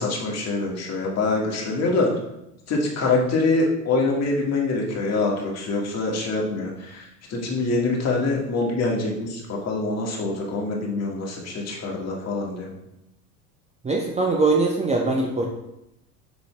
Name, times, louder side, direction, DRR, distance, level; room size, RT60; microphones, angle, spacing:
voice 1, 0.0-2.1 2.7-12.7, left 3 dB, 30° left, -2 dB, 2.1 m, -25 dB
voice 2, 13.8-15.5, right 3 dB, 15° right, 0 dB, 0.8 m, -22 dB
6.6 x 6.4 x 3.3 m, 0.87 s
figure-of-eight pair, 75°, 48 cm